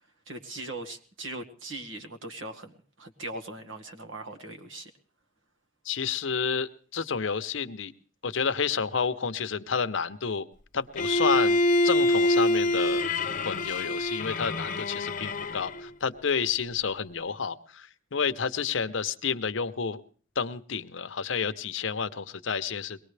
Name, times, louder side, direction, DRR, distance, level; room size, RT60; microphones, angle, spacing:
voice 1, 0.3-4.9, right 2 dB, 80° right, 5 dB, 1.7 m, -40 dB
voice 2, 5.8-7.9 8.2-10.5 10.7-13.0 13.4-20.0 20.4-23.0, left 6 dB, 75° left, 10 dB, 0.8 m, -30 dB
Bowed string instrument, 11.0-15.9, left 1 dB, 45° left, 0.8 m, -25 dB
22.5 x 19.0 x 3.3 m, 0.42 s
head